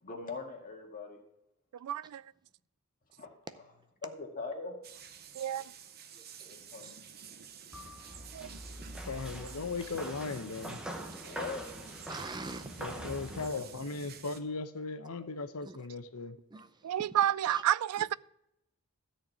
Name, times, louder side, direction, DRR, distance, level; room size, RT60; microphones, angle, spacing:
voice 1, 0.0-1.2 3.2-3.3 4.0-4.8 6.5-7.0 11.2-11.6, left 4 dB, 40° left, 2.0 m, -41 dB
voice 2, 1.8-2.2 5.4-5.6 8.3-8.5 16.8-18.1, right 11 dB, 85° right, 0.3 m, -30 dB
sound 1, 4.8-14.4, right 6 dB, 45° right, 0.8 m, -50 dB
voice 3, 6.1-6.9 8.1-8.4 12.1-12.9 13.3-13.7 15.6-15.9 16.5-17.6 18.0-18.1, right 3 dB, 20° right, 0.6 m, -47 dB
sound 2, 7.7-13.5, equal, 5° right, 1.1 m, -43 dB
voice 4, 9.0-10.8 12.8-16.4, left 3 dB, 80° left, 0.8 m, -38 dB
13.0 x 4.5 x 8.2 m
head